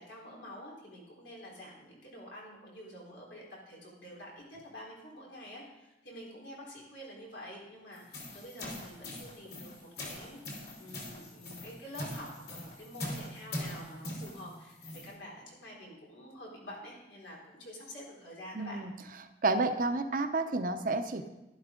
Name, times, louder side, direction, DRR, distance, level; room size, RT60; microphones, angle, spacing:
voice 1, 0.0-18.8, equal, 85° left, -3 dB, 4.1 m, -48 dB
sound 1, 7.9-15.1, left 1 dB, 60° left, 3.2 m, -42 dB
voice 2, 18.5-18.9 19.4-21.3, right 3 dB, 50° right, 8 dB, 0.8 m, -30 dB
12.0 x 11.5 x 3.8 m, 1.0 s
head